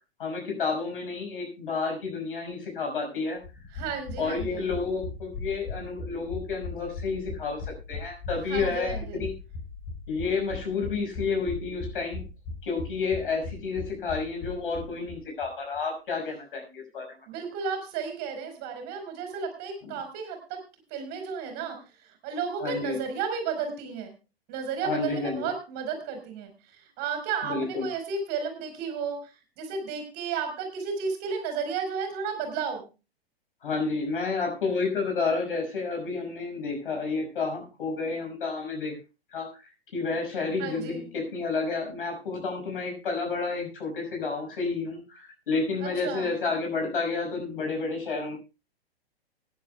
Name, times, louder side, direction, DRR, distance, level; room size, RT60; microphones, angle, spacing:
voice 1, 0.2-3.4 4.2-9.3 10.1-12.2 12.6-17.1 22.6-23.0 24.8-25.5 27.4-27.9 33.6-39.0 39.3-39.5 39.9-48.3, left 4 dB, 60° left, 2 dB, 6.0 m, -30 dB
sound 1, 3.4-15.2 15.4-15.5 15.8-15.9, left 4 dB, 25° left, 4.9 m, -38 dB
voice 2, 3.7-4.7 8.5-9.2 17.3-20.6 20.9-24.1 24.5-26.5 26.8-29.3 29.6-32.9 40.6-41.1 45.8-46.3, right 6 dB, 30° right, 6 dB, 4.6 m, -33 dB
24.0 x 10.5 x 2.3 m, 0.29 s
figure-of-eight pair, 105°, 31 cm